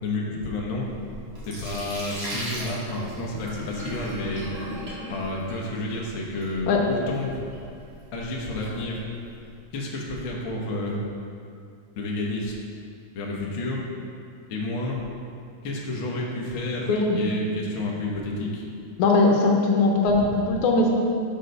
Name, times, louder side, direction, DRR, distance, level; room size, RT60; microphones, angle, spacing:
voice 1, 0.0-0.9 1.5-4.5 5.1-7.4 8.1-9.0 9.7-11.0 11.9-12.5 13.1-13.8 14.5-15.0 15.6-16.9 17.1-18.7 20.1-20.3, left 2 dB, 60° left, -2 dB, 1.4 m, -30 dB
Sink (filling or washing), 0.7-9.5, right 1 dB, 45° right, 2.3 m, -39 dB
voice 2, 16.9-17.2 19.0-20.9, left 3 dB, 75° left, 0 dB, 2.2 m, -20 dB
6.4 x 6.3 x 5.4 m, 2.4 s
omnidirectional pair, 3.5 m